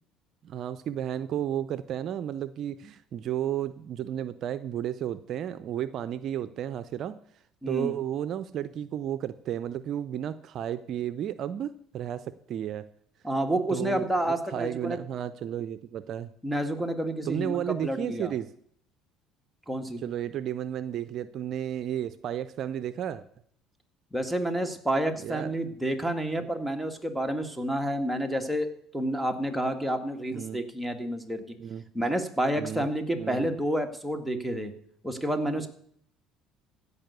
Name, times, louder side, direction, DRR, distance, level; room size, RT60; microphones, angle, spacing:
voice 1, 0.4-7.2 7.7-12.9 13.7-16.3 17.3-18.5 20.0-23.2 25.2-25.5 30.3-30.6 31.6-31.8 32.6-32.9 33.2-33.5, right 10 dB, 55° right, 13 dB, 0.6 m, -33 dB
voice 2, 7.6-7.9 13.2-15.0 16.4-18.3 19.7-20.0 24.1-31.4 31.9-34.7 35.0-35.7, right 1 dB, ahead, 3 dB, 1.9 m, -29 dB
15.5 x 5.5 x 8.1 m, 0.65 s
hypercardioid pair, 75°, 0 cm